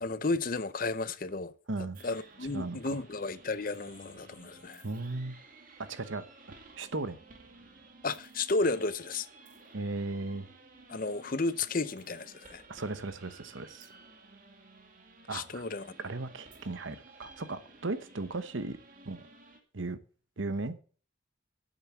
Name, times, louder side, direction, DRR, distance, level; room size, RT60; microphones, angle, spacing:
voice 1, 0.0-1.5 2.0-4.8 8.0-9.3 10.9-12.6 15.3-15.9, left 3 dB, 45° left, 0.7 m, -33 dB
voice 2, 1.7-2.0 2.5-2.8 4.8-5.4 5.8-7.2 9.7-10.5 12.7-13.9 15.3-15.6 16.0-18.8 19.0-19.3 19.7-20.0 20.4-20.8, right 3 dB, 70° right, 1.0 m, -36 dB
sound 1, 1.9-19.6, right 3 dB, 40° right, 2.2 m, -55 dB
9.0 x 8.1 x 7.2 m
head